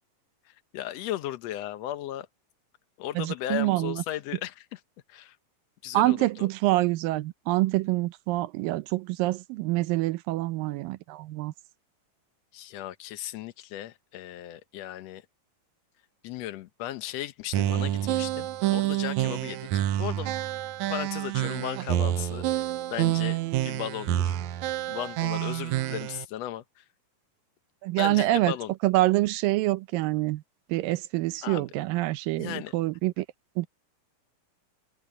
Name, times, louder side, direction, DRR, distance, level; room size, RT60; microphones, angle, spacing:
voice 1, 0.5-2.3 3.0-4.8 5.1-5.4 5.8-6.5 12.5-15.2 16.2-20.3 20.9-24.4 24.9-26.8 28.0-28.7 31.4-31.7 32.4-32.7, left 13 dB, 70° left, 1.6 m, -36 dB
voice 2, 3.2-4.0 5.9-11.5 27.8-28.5 28.8-30.4 30.7-33.3 33.6-33.7, right 18 dB, 90° right, 2.5 m, -26 dB
sound 1, 17.5-26.2, right 13 dB, 70° right, 1.9 m, -28 dB
omnidirectional pair, 3.9 m